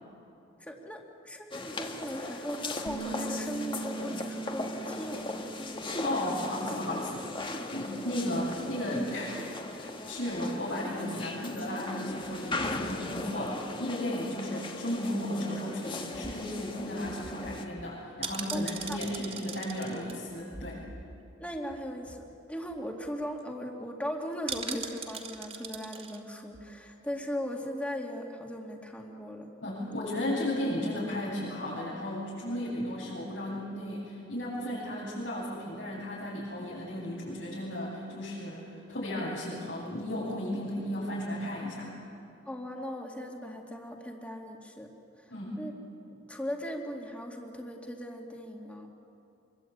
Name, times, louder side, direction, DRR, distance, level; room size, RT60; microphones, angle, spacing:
voice 1, 0.6-5.8 18.5-18.6 18.9-19.3 21.4-29.5 29.8-30.0 42.5-44.9 45.6-45.7 46.3-48.9, equal, 5° left, 1 dB, 2.4 m, -38 dB
sound 1, 1.5-17.7, left 2 dB, 25° left, 1.7 m, -38 dB
Bass guitar, 2.9-7.2 7.5-9.1, right 3 dB, 45° left, 2.1 m, -42 dB
voice 2, 6.0-9.5 9.7-20.8 29.6-41.9 45.3-45.6, left 1 dB, 80° left, -9 dB, 8.0 m, -34 dB
sound 2, 16.0-21.4 21.7-21.8 22.1-22.3 22.7-22.8 23.0-23.4 24.5-26.2 26.5-26.7, right 5 dB, 35° right, 2.4 m, -41 dB
26.5 x 23.5 x 8.8 m, 2.8 s
head